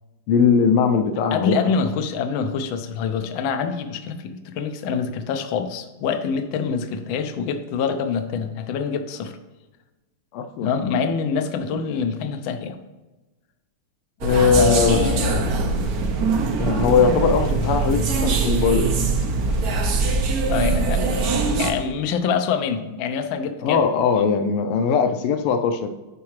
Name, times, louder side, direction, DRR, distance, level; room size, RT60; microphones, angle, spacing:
voice 1, 0.3-1.7 10.3-10.7 14.2-15.4 16.6-19.2 23.6-25.9, left 6 dB, 85° left, 7 dB, 1.6 m, -20 dB
voice 2, 1.3-9.3 10.6-12.8 14.6-15.7 20.5-23.8, left 6 dB, 70° left, 7 dB, 1.4 m, -25 dB
sound 1, 14.2-21.7, right 3 dB, 60° right, 1.0 m, -22 dB
11.5 x 4.7 x 3.1 m, 1.1 s
omnidirectional pair, 2.4 m